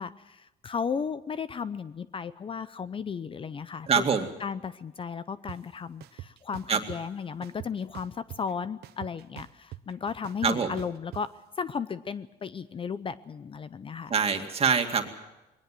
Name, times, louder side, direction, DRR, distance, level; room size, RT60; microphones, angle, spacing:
voice 1, 0.0-4.0 4.4-11.3 11.6-14.1, left 6 dB, 30° left, 15 dB, 0.6 m, -35 dB
voice 2, 3.9-4.3 6.7-6.8 10.4-10.7 14.1-15.1, right 6 dB, 35° right, 5 dB, 2.4 m, -24 dB
sound 1, 5.5-5.6 6.0-7.0 7.4-8.5 8.8-11.2, right 15 dB, 75° right, 0.9 m, -43 dB
21.0 x 18.5 x 7.7 m, 0.99 s
cardioid pair, 110°, 17 cm